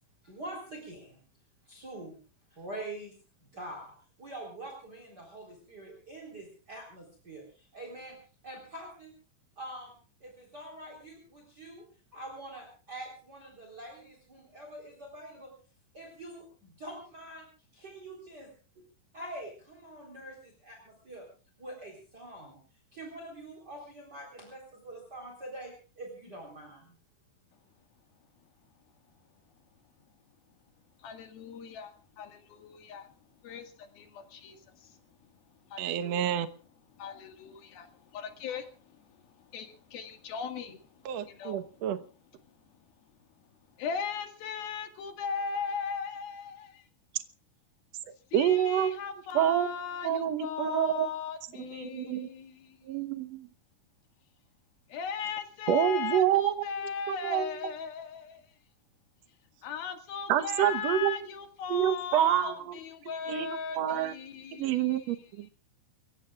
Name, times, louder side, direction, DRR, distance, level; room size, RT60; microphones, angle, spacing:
voice 1, 0.2-1.2 1.7-2.2 2.5-3.1 3.4-8.2 8.4-9.1 9.6-11.8 12.1-15.5 15.9-18.8 19.1-21.3 21.6-22.6 22.9-27.0, right 1 dB, 25° right, 1 dB, 4.3 m, -45 dB
voice 2, 31.0-33.1 33.4-35.0 35.7-36.4 36.9-39.0 39.5-39.7 39.9-41.8 43.8-46.8 48.3-52.9 54.9-58.5 59.6-65.2, left 6 dB, 85° left, 6 dB, 3.8 m, -38 dB
voice 3, 35.8-36.5 41.1-42.0 48.3-49.0 49.4-49.7 50.0-51.1 51.6-52.3 52.9-53.5 55.7-56.6 57.1-57.5 60.3-61.1 61.7-62.8 63.3-64.1 64.5-65.5, right 10 dB, 65° right, 10 dB, 1.8 m, -27 dB
28.5 x 16.0 x 2.4 m, 0.38 s
omnidirectional pair, 4.2 m